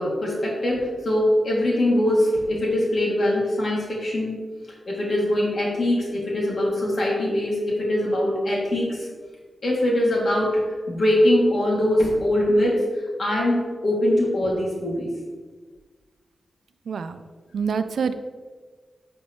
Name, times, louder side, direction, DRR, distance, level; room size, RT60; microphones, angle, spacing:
voice 1, 0.0-4.4 4.9-9.1 9.6-15.1, left 1 dB, 55° left, -3 dB, 2.5 m, -22 dB
voice 2, 16.9-17.2 17.5-18.1, right 6 dB, 85° right, 10 dB, 0.5 m, -26 dB
10.5 x 5.3 x 3.2 m, 1.4 s
wide cardioid pair, 95°, 0 cm